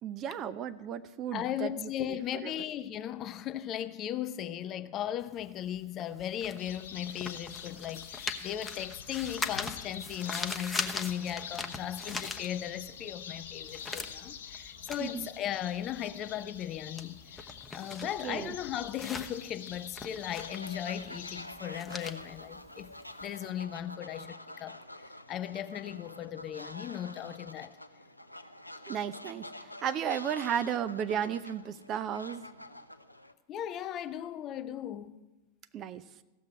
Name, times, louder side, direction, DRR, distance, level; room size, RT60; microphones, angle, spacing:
voice 1, 0.0-1.9 2.4-2.5 15.0-15.3 18.2-18.5 28.9-29.4 29.8-32.4 35.7-36.0, right 9 dB, 35° right, 0.7 m, -34 dB
voice 2, 1.3-22.9 23.2-24.8 25.3-27.8 33.5-35.3, left 11 dB, 30° left, 0.7 m, -37 dB
sound 1, 5.2-13.0 13.3-23.4, left 4 dB, 15° left, 1.0 m, -41 dB
sound 2, 6.6-21.5, left 8 dB, 60° left, 1.0 m, -46 dB
Fowl, 20.3-33.3, left 1 dB, 85° left, 0.6 m, -47 dB
15.0 x 7.4 x 9.7 m
figure-of-eight pair, 90°, 0 cm